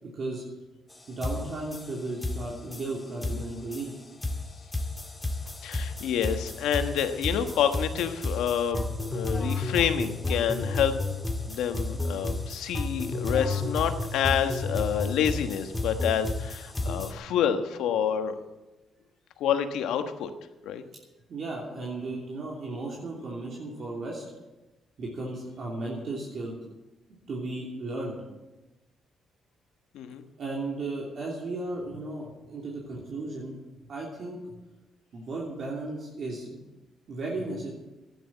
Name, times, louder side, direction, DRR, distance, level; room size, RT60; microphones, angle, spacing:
sound 1, 0.9-1.0 1.2-17.1, left 2 dB, 15° left, 1.8 m, -32 dB
voice 1, 1.1-3.9 21.3-24.2 25.0-26.5 27.3-28.2 30.4-33.6 33.9-34.4 35.1-36.6 37.1-37.7, right 2 dB, 55° right, -3 dB, 3.0 m, -35 dB
voice 2, 5.6-10.9 11.5-18.4 19.4-20.3 20.6-20.8 29.9-30.2, left 8 dB, 85° left, 8 dB, 1.2 m, -28 dB
12.0 x 10.5 x 8.5 m, 1.1 s
cardioid pair, 90°, 0 cm